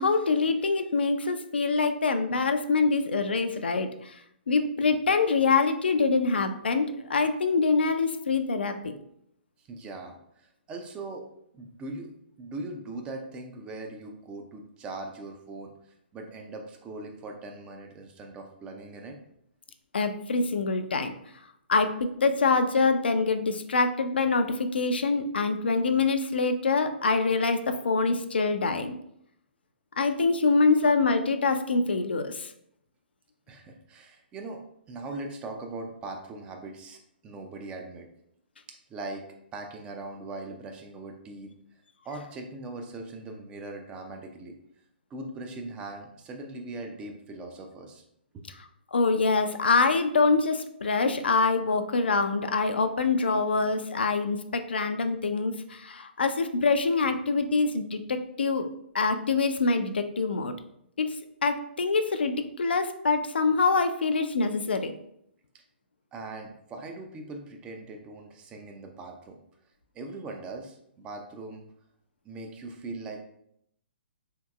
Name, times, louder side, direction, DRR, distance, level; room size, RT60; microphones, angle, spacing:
voice 1, 0.0-4.2 4.5-8.9 19.9-21.1 21.7-28.9 30.0-32.5 48.9-58.7 58.9-60.5 61.0-61.1 61.4-64.9, left 4 dB, 70° left, 8 dB, 0.3 m, -25 dB
voice 2, 9.6-11.3 11.5-12.1 12.4-15.7 16.1-19.2 33.5-34.6 34.9-38.1 38.9-39.2 39.5-41.5 42.0-44.5 45.1-48.0 48.3-48.4 65.5-65.6 66.1-69.4 69.9-71.6 72.2-73.2, right 2 dB, 15° right, 4 dB, 0.4 m, -40 dB
3.7 x 2.8 x 2.3 m, 0.73 s
figure-of-eight pair, 125°, 6 cm